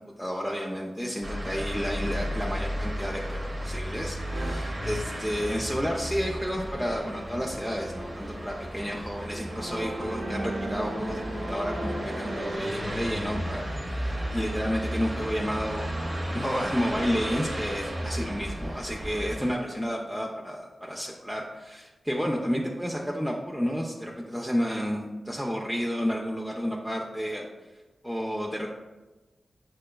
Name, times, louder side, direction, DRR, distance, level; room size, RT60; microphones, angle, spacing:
voice 1, 0.2-15.9 16.3-27.4 28.0-28.7, equal, ahead, -2 dB, 0.5 m, -31 dB
sound 1, 1.2-19.5, equal, 35° right, 0.7 m, -34 dB
sound 2, 4.3-4.5 5.7-12.7, right 1 dB, 65° right, 1.0 m, -37 dB
6.1 x 2.2 x 2.2 m, 1.2 s
cardioid pair, 45°, 0 cm